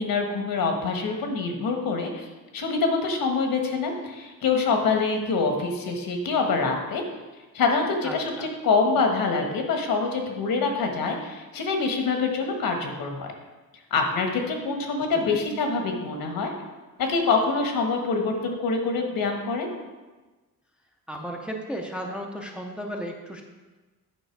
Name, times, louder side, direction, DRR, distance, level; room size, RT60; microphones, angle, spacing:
voice 1, 0.0-2.3 2.5-7.0 7.5-13.3 13.9-16.5 17.0-19.7, left 4 dB, 75° left, 3 dB, 1.4 m, -25 dB
voice 2, 8.0-8.5 15.0-15.4 21.1-23.4, equal, 5° right, 1 dB, 0.6 m, -35 dB
9.0 x 5.7 x 4.6 m, 1.2 s
wide cardioid pair, 180°, 35 cm